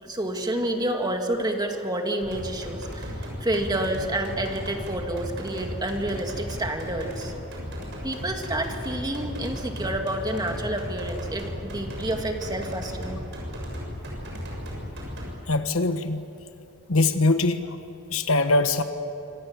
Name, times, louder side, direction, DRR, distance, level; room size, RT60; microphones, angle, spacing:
voice 1, 0.0-7.3 8.0-13.2, right 1 dB, 20° right, 3 dB, 2.2 m, -29 dB
sound 1, 2.2-15.3, equal, 55° right, 7.0 m, -35 dB
voice 2, 15.5-16.2 16.9-17.8 18.1-18.8, left 2 dB, 70° left, 8 dB, 1.4 m, -22 dB
26.0 x 26.0 x 7.5 m, 2.7 s
head